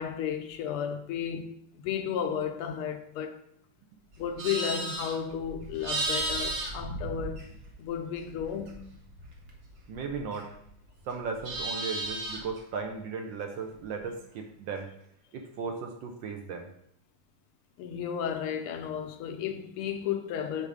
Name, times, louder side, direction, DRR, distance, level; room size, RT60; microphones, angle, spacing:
voice 1, 0.0-3.4 4.2-7.4 7.8-8.8 17.8-20.7, left 8 dB, 80° left, 1.5 m, -33 dB
Livestock farm animals working animals, 4.1-7.8 8.2-10.7 11.0-12.6, right 2 dB, 55° right, 1.4 m, -35 dB
voice 2, 9.9-10.5 11.1-14.9 15.3-16.7, right 5 dB, 70° right, 1.2 m, -36 dB
5.3 x 3.9 x 4.9 m
omnidirectional pair, 2.4 m